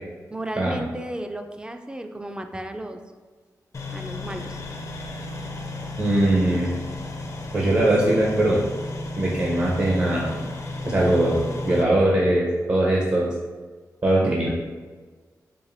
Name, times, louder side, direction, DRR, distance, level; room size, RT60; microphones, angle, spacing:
voice 1, 0.3-3.0 3.9-4.6 14.2-14.5, right 1 dB, 15° right, 6 dB, 0.4 m, -34 dB
sound 1, 3.7-11.8, left 2 dB, 50° left, 0.5 m, -33 dB
voice 2, 6.0-6.7 7.5-8.6 9.2-10.3 10.8-13.3 14.0-14.5, right 1 dB, 50° right, -4 dB, 0.8 m, -21 dB
4.8 x 2.6 x 2.6 m, 1.4 s
cardioid pair, 50°, 7 cm